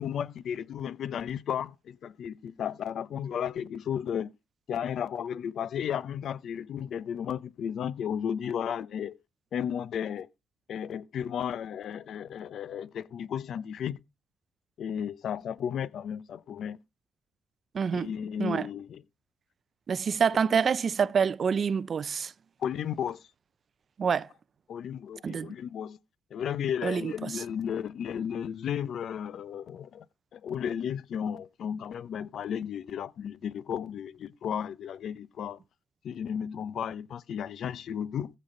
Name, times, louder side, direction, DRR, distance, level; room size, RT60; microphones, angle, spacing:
voice 1, 0.0-4.3 4.7-9.2 9.5-10.3 10.7-14.0 14.8-16.8 17.9-19.0 22.6-23.3 24.7-26.0 26.3-30.1 30.3-35.6 36.0-38.3, left 8 dB, 65° left, 0.8 m, -34 dB
voice 2, 17.7-18.1 18.4-18.7 19.9-22.3 24.0-24.3 25.2-25.5 26.8-27.4, right 6 dB, 50° right, 0.5 m, -27 dB
15.0 x 5.4 x 3.9 m
cardioid pair, 90°, 0 cm